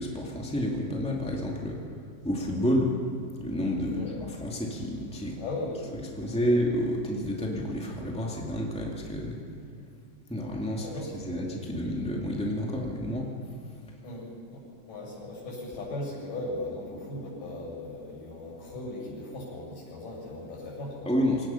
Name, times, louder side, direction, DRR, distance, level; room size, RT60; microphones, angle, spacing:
voice 1, 0.0-1.8 2.2-2.9 3.4-5.4 6.2-9.4 10.3-13.3 21.0-21.5, equal, 5° left, -2 dB, 0.6 m, -29 dB
voice 2, 3.8-4.1 5.4-5.9 6.2-6.4 10.8-11.5 14.0-14.6 14.9-21.1, left 2 dB, 55° left, -5 dB, 8.7 m, -38 dB
27.0 x 18.0 x 5.8 m, 2.5 s
omnidirectional pair, 4.8 m